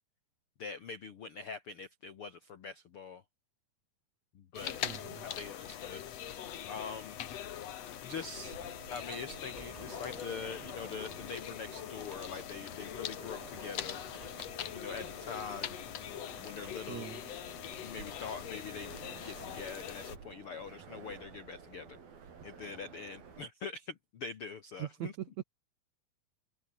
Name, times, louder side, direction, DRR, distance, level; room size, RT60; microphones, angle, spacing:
voice 1, 0.6-3.2 4.3-4.8 5.3-7.2 8.0-8.6 8.9-14.0 14.7-15.7 16.4-17.1 17.8-18.9 19.2-22.0 22.4-25.2, left 5 dB, 80° left, 1.2 m, -44 dB
sound 1, 4.5-20.2, left 10 dB, 60° left, 1.9 m, -42 dB
voice 2, 4.8-5.2 16.9-17.2 24.8-25.4, right 13 dB, 85° right, 1.6 m, -41 dB
sound 2, 8.4-23.5, right 6 dB, 60° right, 6.1 m, -52 dB
Car, 9.3-10.1 11.1-11.2 11.9-12.5 13.9-14.6 16.4-17.1, right 1 dB, 10° right, 4.3 m, -57 dB
omnidirectional pair, 4.7 m